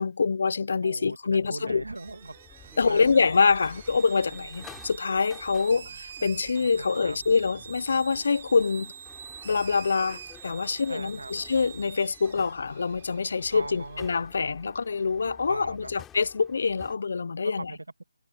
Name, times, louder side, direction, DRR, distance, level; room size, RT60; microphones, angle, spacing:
voice 1, 0.0-1.8 2.8-8.9 9.4-17.7, left 5 dB, 60° left, 0.6 m, -25 dB
voice 2, 0.8-3.3 6.8-7.2 10.9-11.3 13.5-14.1 15.5-15.9 17.4-18.0, right 2 dB, 90° right, 2.0 m, -40 dB
sound 1, 1.4-17.0, left 10 dB, 10° left, 3.6 m, -52 dB
sound 2, 1.6-7.8, right 14 dB, 25° right, 0.8 m, -54 dB
sound 3, 2.0-14.2, right 8 dB, 45° right, 1.9 m, -46 dB
figure-of-eight pair, 155°, 0 cm